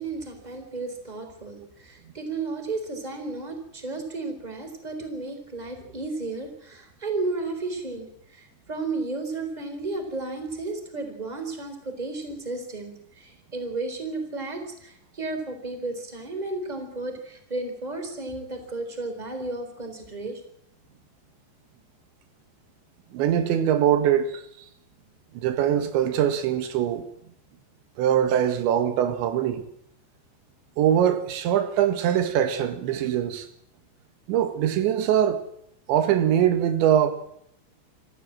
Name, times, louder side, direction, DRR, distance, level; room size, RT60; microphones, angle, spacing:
voice 1, 0.0-20.4, right 3 dB, 10° right, 3.7 m, -33 dB
voice 2, 23.1-24.4 25.3-27.1 28.0-29.7 30.8-33.5 34.3-35.5 35.9-37.1, right 10 dB, 85° right, 3.8 m, -22 dB
26.0 x 14.0 x 7.6 m
omnidirectional pair, 5.1 m